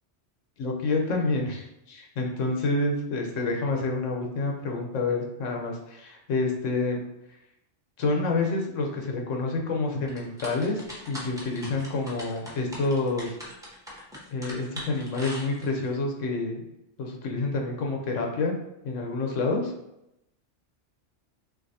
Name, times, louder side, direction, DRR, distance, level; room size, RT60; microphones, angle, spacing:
voice 1, 0.6-7.0 8.0-13.4 14.3-16.6 17.0-18.5 18.8-19.7, left 3 dB, 85° left, 1 dB, 1.2 m, -28 dB
sound 1, 10.1-15.9, left 1 dB, 5° right, 0.9 m, -41 dB
6.0 x 2.6 x 2.7 m, 0.84 s
omnidirectional pair, 1.2 m